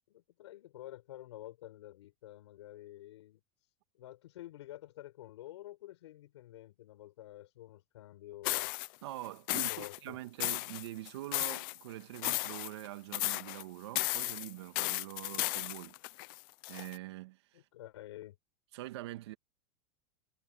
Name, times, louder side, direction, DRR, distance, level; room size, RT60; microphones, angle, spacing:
voice 1, 0.1-8.8 9.5-10.2 17.5-18.4, left 14 dB, 85° left, 6.2 m, -50 dB
sound 1, 8.4-8.9 9.5-10.0 10.4-11.8 12.1-12.9 13.1-13.6 13.9-17.0, left 23 dB, 50° left, 0.7 m, -34 dB
voice 2, 9.0-16.0 16.7-17.6 18.7-19.3, right 16 dB, 70° right, 2.3 m, -44 dB
supercardioid pair, 160°, 14 cm